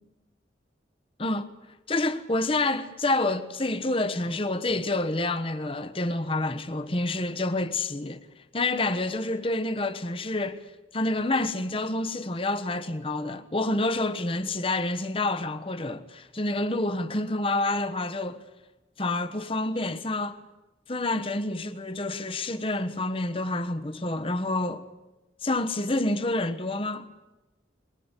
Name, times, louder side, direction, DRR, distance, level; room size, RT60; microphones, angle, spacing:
voice 1, 1.2-1.5 1.9-8.2 8.5-10.6 10.9-18.4 19.0-20.4 20.9-24.9 25.4-27.1, left 2 dB, 30° left, 1.2 m, -28 dB
22.5 x 21.0 x 8.3 m
head